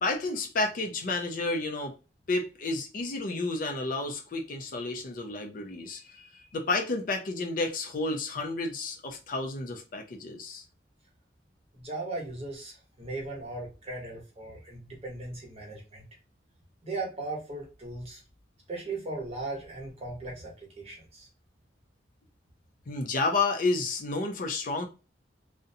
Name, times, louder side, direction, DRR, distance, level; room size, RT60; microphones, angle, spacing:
voice 1, 0.0-1.9 2.3-10.6 22.9-24.9, left 3 dB, 50° left, 0.4 m, -31 dB
voice 2, 11.7-16.0 16.8-18.2 18.7-21.3, right 2 dB, 35° right, 0.9 m, -38 dB
2.5 x 2.1 x 2.6 m
head